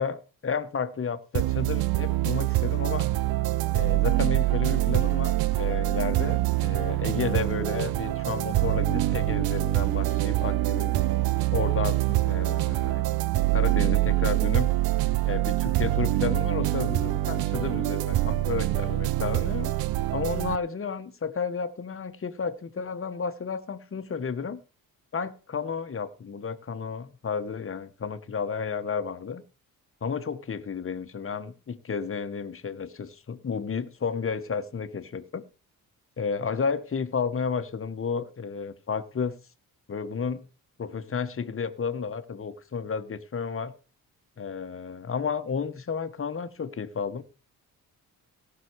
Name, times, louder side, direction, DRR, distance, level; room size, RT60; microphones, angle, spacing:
voice 1, 0.0-3.1 3.7-10.9 11.5-13.0 13.5-14.7 15.2-19.7 20.1-24.6 25.1-29.4 30.0-35.4 36.2-39.4 39.9-40.5 40.8-43.7 44.4-47.2, left 6 dB, 35° left, 1.3 m, -32 dB
sound 1, 1.3-20.6, right 17 dB, 80° right, 0.6 m, -25 dB
17.5 x 6.0 x 4.7 m
cardioid pair, 90°, 35 cm